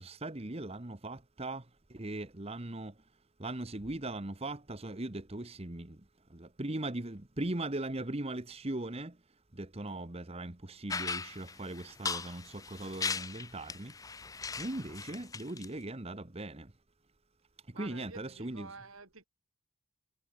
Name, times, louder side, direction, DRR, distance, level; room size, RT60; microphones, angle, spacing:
voice 1, 0.0-1.6 1.9-2.9 3.4-6.0 6.3-9.1 9.6-13.9 14.6-16.7 17.8-18.7, right 2 dB, 30° right, 1.2 m, -39 dB
sound 1, 10.9-15.7, left 5 dB, 15° left, 0.6 m, -38 dB
voice 2, 17.7-19.2, right 4 dB, 80° right, 3.2 m, -49 dB
head